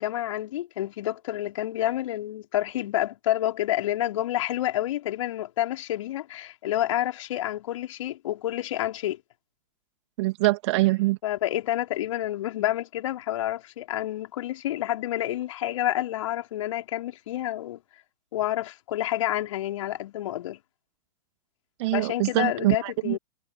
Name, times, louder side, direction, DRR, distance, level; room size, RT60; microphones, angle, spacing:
voice 1, 0.0-9.2 11.2-17.8 18.3-20.6 21.9-23.2, left 13 dB, 50° left, 4.0 m, -29 dB
voice 2, 10.2-11.2 21.8-23.2, right 20 dB, 45° right, 2.4 m, -24 dB
figure-of-eight pair, 105°, 20 cm